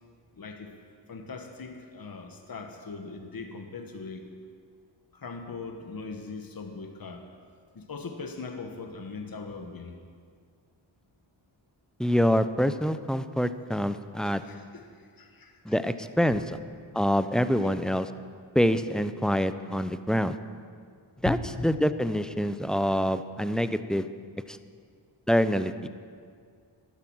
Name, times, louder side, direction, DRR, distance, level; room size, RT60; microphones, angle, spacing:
voice 1, 0.4-0.7 1.1-4.3 5.1-7.2 7.7-10.0 14.2-15.6 17.5-17.8 21.3-21.7, left 4 dB, 45° left, 5 dB, 1.3 m, -39 dB
voice 2, 12.0-14.4 15.7-16.6 16.9-18.1 18.5-20.4 21.2-24.1 24.5-24.6 25.3-25.9, equal, ahead, 11 dB, 0.6 m, -26 dB
12.0 x 11.5 x 6.2 m, 2.1 s
cardioid pair, 50°, 48 cm